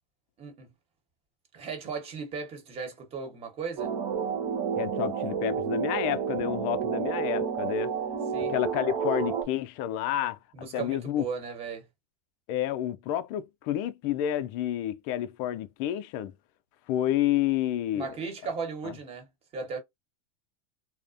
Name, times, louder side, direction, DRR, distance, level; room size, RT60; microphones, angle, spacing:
voice 1, 0.4-0.7 1.5-3.9 8.3-8.6 10.5-11.9 17.9-19.8, right 5 dB, 35° right, 1.1 m, -36 dB
sound 1, 3.8-9.4, right 7 dB, 60° right, 0.9 m, -30 dB
voice 2, 4.8-7.9 8.5-10.4 10.7-11.2 12.5-16.3 16.9-18.1 18.8-18.9, left 12 dB, 50° left, 0.4 m, -29 dB
2.4 x 2.1 x 2.5 m
hypercardioid pair, 105°, 17 cm